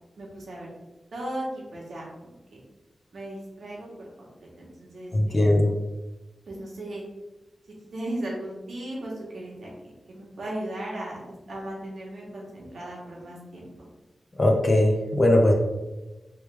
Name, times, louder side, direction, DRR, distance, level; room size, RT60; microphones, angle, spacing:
voice 1, 0.2-0.7 1.1-2.6 3.1-4.1 4.4-5.5 6.5-7.0 7.9-13.9, right 1 dB, 70° right, -3 dB, 1.1 m, -37 dB
voice 2, 5.1-5.7 14.4-15.5, left 1 dB, 25° left, 1 dB, 0.5 m, -19 dB
3.2 x 3.1 x 3.4 m, 1.1 s
wide cardioid pair, 160°, 0 cm